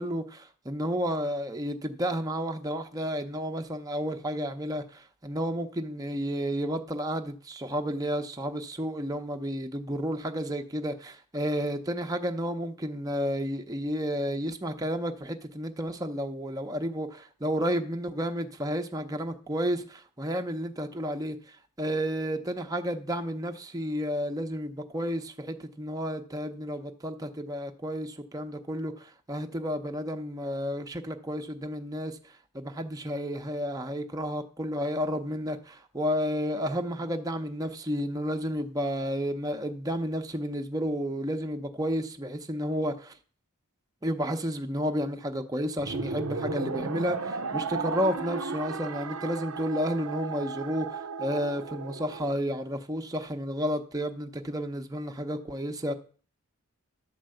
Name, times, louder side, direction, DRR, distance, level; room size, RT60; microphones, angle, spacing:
voice 1, 0.0-43.2 44.0-55.9, equal, 15° right, 0.8 m, -31 dB
sound 1, 45.8-52.3, right 4 dB, 65° right, 0.7 m, -35 dB
11.5 x 4.6 x 7.7 m
head